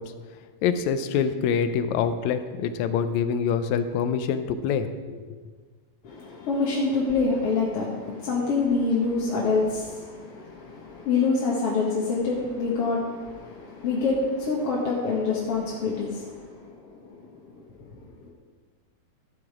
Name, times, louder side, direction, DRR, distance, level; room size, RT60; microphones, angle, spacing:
voice 1, 0.6-5.4, left 7 dB, 75° left, 10 dB, 1.9 m, -25 dB
voice 2, 6.0-18.3, left 4 dB, 55° left, -4 dB, 2.0 m, -27 dB
13.0 x 7.8 x 4.8 m, 1.5 s
omnidirectional pair, 3.4 m